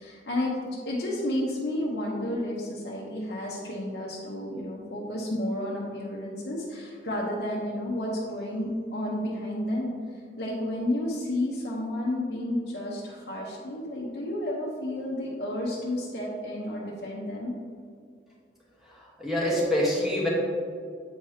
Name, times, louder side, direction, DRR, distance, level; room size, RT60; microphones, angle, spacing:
voice 1, 0.0-9.9 10.4-17.5, left 1 dB, 75° left, -5 dB, 0.9 m, -31 dB
voice 2, 19.2-20.3, left 1 dB, 5° right, -6 dB, 1.3 m, -25 dB
8.1 x 4.9 x 2.8 m, 2.2 s
head